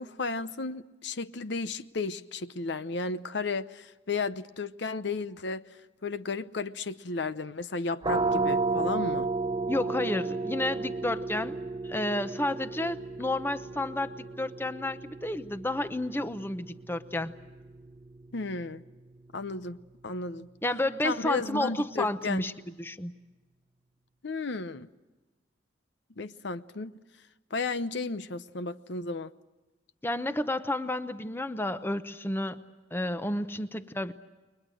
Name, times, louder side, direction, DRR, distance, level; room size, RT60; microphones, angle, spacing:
voice 1, 0.0-5.7 6.0-9.3 18.3-18.8 19.3-20.5 21.0-22.4 24.2-24.9 26.2-26.9 27.5-29.3, left 3 dB, 65° left, 0.8 m, -34 dB
sound 1, 8.0-19.5, right 3 dB, 25° right, 0.8 m, -34 dB
voice 2, 9.7-17.4 20.6-22.5 22.8-23.1 30.0-34.1, left 1 dB, 10° left, 0.8 m, -31 dB
30.0 x 22.5 x 6.4 m
head